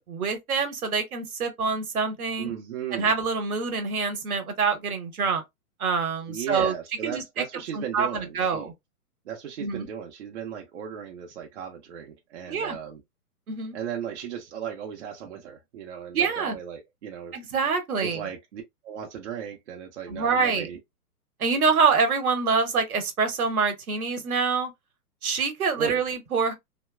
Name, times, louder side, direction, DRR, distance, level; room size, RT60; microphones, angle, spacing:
voice 1, 0.1-2.5 2.9-5.4 5.8-6.7 7.0-7.4 7.7-8.7 9.6-9.9 12.5-12.8 13.5-13.8 16.1-16.6 17.3-18.2 20.1-20.7 21.4-24.7 25.2-26.5, right 5 dB, 65° right, 1.0 m, -26 dB
voice 2, 2.4-3.1 6.3-8.7 9.3-13.0 13.7-17.4 18.0-20.8 25.7-26.0, right 8 dB, 50° right, 0.7 m, -36 dB
2.8 x 2.2 x 2.2 m
figure-of-eight pair, 120°, 47 cm